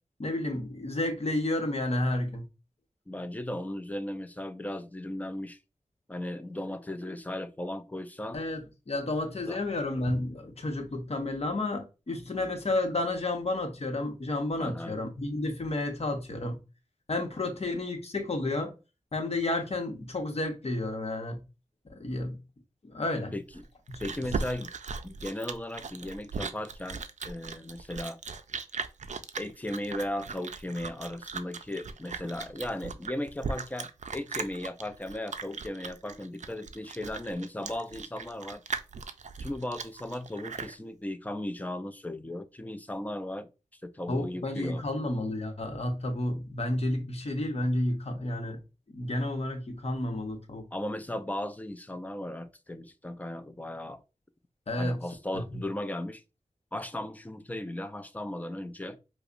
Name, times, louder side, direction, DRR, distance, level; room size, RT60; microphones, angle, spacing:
voice 1, 0.2-2.5 8.3-16.6 17.1-18.7 19.1-21.4 21.9-22.4 22.8-23.3 44.1-48.6 48.9-50.6 54.7-55.0 55.5-55.6, left 2 dB, 50° left, 0.9 m, -31 dB
voice 2, 3.1-5.6 6.1-8.4 9.5-9.6 12.3-12.5 14.6-14.9 17.3-17.6 23.3-23.6 24.0-24.7 25.0-28.2 29.4-38.6 39.4-43.5 43.8-44.8 50.7-54.0 54.7-56.2 56.7-59.0, left 1 dB, 10° left, 0.5 m, -36 dB
Chewing mastication, 23.5-40.8, right 5 dB, 65° right, 0.4 m, -38 dB
4.8 x 2.1 x 2.5 m
wide cardioid pair, 55°, 13 cm